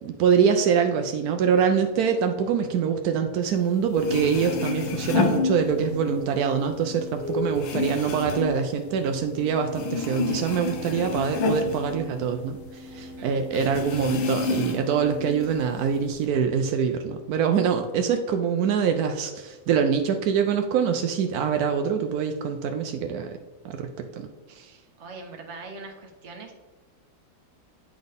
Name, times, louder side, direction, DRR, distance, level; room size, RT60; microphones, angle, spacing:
voice 1, 0.0-23.4 23.6-24.3 24.6-24.7, right 7 dB, 85° right, 6 dB, 0.8 m, -24 dB
sound 1, 3.7-3.8 3.9-6.2 6.5-9.4 9.7-12.7 13.0-13.1 13.5-15.0 15.4-16.2, left 4 dB, 80° left, 1.6 m, -29 dB
sound 2, 4.4-15.6, left 1 dB, 35° left, 0.9 m, -40 dB
voice 2, 25.0-26.6, right 3 dB, 45° right, 3 dB, 1.0 m, -41 dB
9.6 x 4.0 x 3.4 m, 1.2 s
omnidirectional pair, 2.2 m